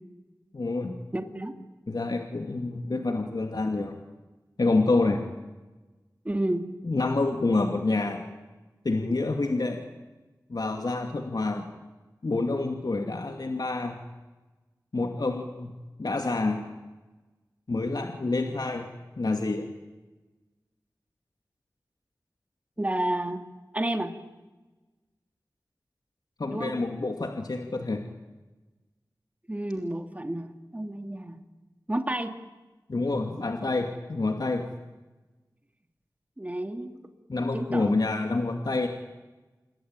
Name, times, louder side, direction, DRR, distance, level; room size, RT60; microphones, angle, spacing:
voice 1, 0.5-1.0 1.9-3.9 4.6-5.2 6.8-8.2 8.8-9.8 10.5-11.7 12.2-14.0 14.9-15.7 16.0-16.6 17.7-18.9 19.2-19.7 26.4-28.0 32.9-34.6 37.3-38.9, left 3 dB, 65° left, 4 dB, 2.4 m, -27 dB
voice 2, 1.1-1.5 6.2-6.7 22.8-23.4 23.7-24.1 26.5-26.7 29.5-31.4 31.9-32.3 36.4-37.0 37.5-37.9, right 1 dB, 20° right, 6 dB, 2.4 m, -30 dB
27.5 x 22.0 x 9.0 m, 1.2 s
wide cardioid pair, 70°, 7 cm